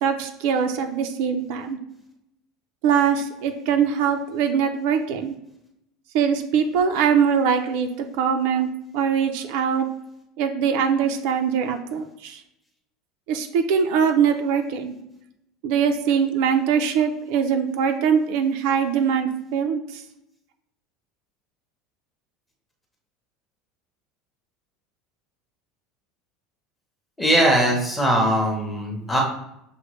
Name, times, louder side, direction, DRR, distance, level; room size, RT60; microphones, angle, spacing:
voice 1, 0.0-1.8 2.8-5.3 6.1-8.7 8.9-9.9 10.4-12.4 13.3-14.9 15.6-20.0, right 7 dB, 60° right, 6 dB, 0.5 m, -22 dB
voice 2, 27.2-29.2, right 1 dB, 5° left, 0 dB, 0.7 m, -20 dB
6.2 x 2.2 x 3.0 m, 0.80 s
cardioid pair, 170°, 0 cm